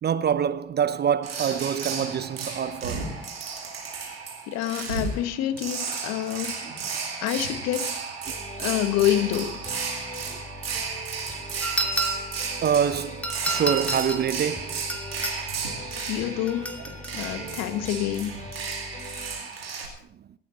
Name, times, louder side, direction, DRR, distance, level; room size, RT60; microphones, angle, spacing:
voice 1, 0.0-3.1 12.6-14.8 17.4-17.5, right 8 dB, 35° right, 0.6 m, -26 dB
sound 1, 1.2-19.9, right 5 dB, 90° right, 2.5 m, -34 dB
voice 2, 4.5-6.6 7.2-7.9 8.6-9.5 16.1-16.7 17.1-18.4, left 12 dB, 60° left, 1.5 m, -27 dB
sound 2, 8.2-19.4, left 2 dB, 25° left, 2.9 m, -42 dB
sound 3, 11.6-12.4 13.2-14.3 14.9-15.4 16.5-17.4, right 2 dB, 5° left, 2.5 m, -30 dB
17.5 x 16.0 x 4.0 m
hypercardioid pair, 55°, 29 cm